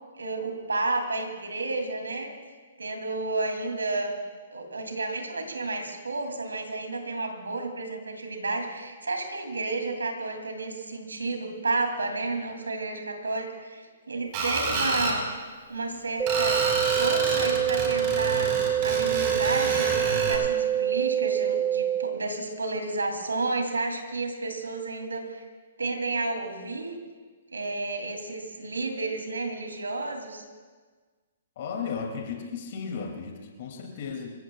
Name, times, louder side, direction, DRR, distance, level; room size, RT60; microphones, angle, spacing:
voice 1, 0.2-2.3 2.8-4.2 4.5-15.3 15.7-16.5 16.8-25.4 25.8-26.9 27.5-30.4, right 3 dB, 90° right, 3 dB, 2.8 m, -31 dB
Screech, 14.3-15.2 16.3-20.4, right 3 dB, 40° right, 4.5 m, -29 dB
sound 1, 16.2-22.2, right 10 dB, 10° right, 0.4 m, -26 dB
voice 2, 31.6-34.3, left 6 dB, 55° left, 1 dB, 2.6 m, -35 dB
26.5 x 16.0 x 2.4 m, 1.5 s
hypercardioid pair, 130°, 0 cm